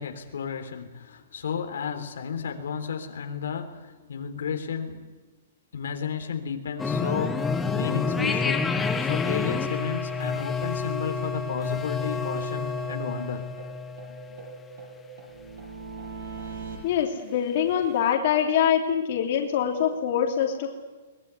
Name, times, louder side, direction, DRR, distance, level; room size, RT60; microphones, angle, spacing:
voice 1, 0.0-5.0 5.7-8.7 9.0-13.5, left 6 dB, 85° left, 5 dB, 3.6 m, -33 dB
sound 1, 6.8-14.8, left 4 dB, 5° left, 1.1 m, -29 dB
sound 2, 10.4-10.5 10.8-10.9 11.2-11.3 11.6-11.7 12.0-13.3 13.6-16.8, right 5 dB, 70° right, 7.8 m, -42 dB
voice 2, 16.8-20.8, left 9 dB, 40° left, 2 dB, 3.2 m, -24 dB
22.5 x 21.0 x 9.7 m, 1.3 s
hypercardioid pair, 180°, 0 cm